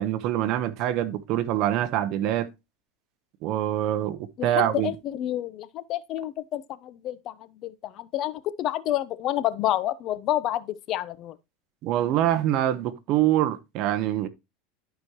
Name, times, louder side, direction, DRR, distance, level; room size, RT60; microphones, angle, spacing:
voice 1, 0.0-2.5 3.4-4.9 11.8-14.3, right 12 dB, 50° right, 0.9 m, -25 dB
voice 2, 4.4-7.3 7.6-11.4, left 13 dB, 45° left, 0.6 m, -29 dB
11.5 x 4.9 x 2.9 m
supercardioid pair, 140°, 0 cm